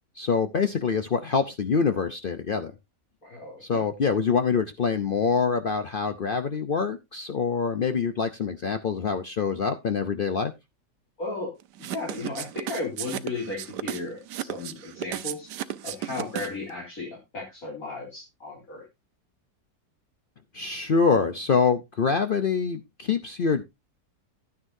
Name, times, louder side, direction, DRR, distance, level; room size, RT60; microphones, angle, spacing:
voice 1, 0.2-2.7 3.6-10.5 20.5-23.6, left 5 dB, 70° left, 9 dB, 0.5 m, -25 dB
voice 2, 3.2-3.8 11.2-11.5 11.9-15.5 15.8-18.8, left 3 dB, 55° left, -3 dB, 3.2 m, -35 dB
sound 1, 11.8-16.7, right 12 dB, 80° right, 1.3 m, -34 dB
11.5 x 9.6 x 2.6 m, 0.22 s
omnidirectional pair, 1.8 m